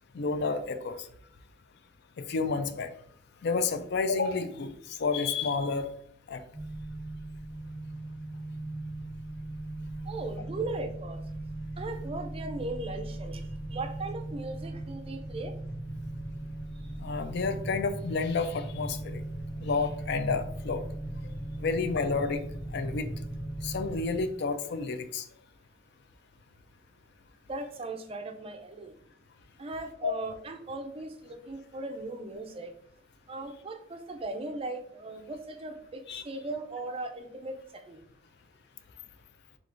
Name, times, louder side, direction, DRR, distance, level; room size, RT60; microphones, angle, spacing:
voice 1, 0.1-0.9 2.2-2.9 3.4-4.7 5.0-5.9 6.3-6.4 17.0-19.2 19.6-20.8 21.6-22.4 22.7-23.1 23.6-25.3 30.0-30.2 36.1-36.2, left 4 dB, 50° left, 10 dB, 0.4 m, -30 dB
sound 1, 6.5-24.2, right 1 dB, 20° left, 1.0 m, -38 dB
voice 2, 10.0-11.2 11.8-15.6 16.7-16.9 27.5-28.9 29.6-32.7 33.3-38.0, right 2 dB, 25° right, 6 dB, 0.4 m, -38 dB
3.6 x 3.4 x 3.8 m, 0.67 s
head